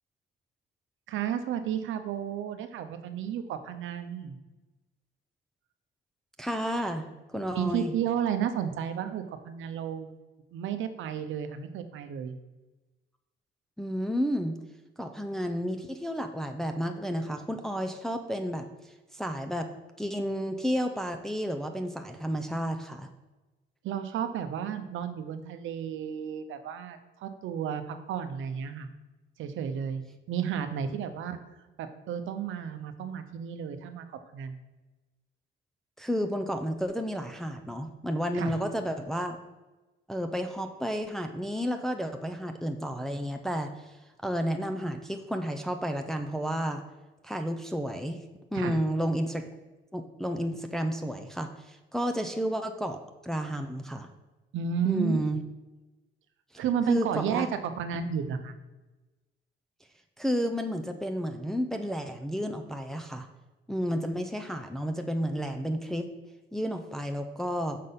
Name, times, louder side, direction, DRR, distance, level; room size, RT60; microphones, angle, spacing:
voice 1, 1.1-4.4 7.5-10.2 10.5-12.4 23.8-28.9 29.4-31.4 31.8-34.1 34.3-34.6 38.3-38.6 48.5-48.8 54.5-55.2 56.6-58.6, right 8 dB, 80° right, 9 dB, 0.7 m, -32 dB
voice 2, 6.4-7.9 13.8-14.5 15.0-18.7 19.1-19.7 20.0-23.1 36.0-39.4 40.1-44.0 44.2-46.8 47.2-48.2 48.5-49.4 49.9-54.1 54.8-55.4 56.9-57.5 60.2-63.3 63.7-66.1 66.5-67.8, equal, ahead, 5 dB, 0.5 m, -31 dB
6.5 x 3.9 x 5.6 m, 1.1 s
cardioid pair, 90°, 20 cm